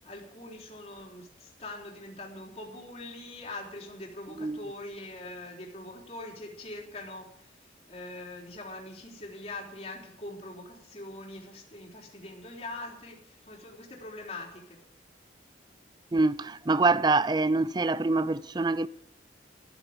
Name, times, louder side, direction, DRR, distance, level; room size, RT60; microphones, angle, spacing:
voice 1, 0.0-7.5 7.9-14.8, left 2 dB, 35° left, 3.9 m, -43 dB
voice 2, 16.1-18.9, right 3 dB, 25° right, 0.4 m, -25 dB
14.0 x 13.5 x 5.2 m
head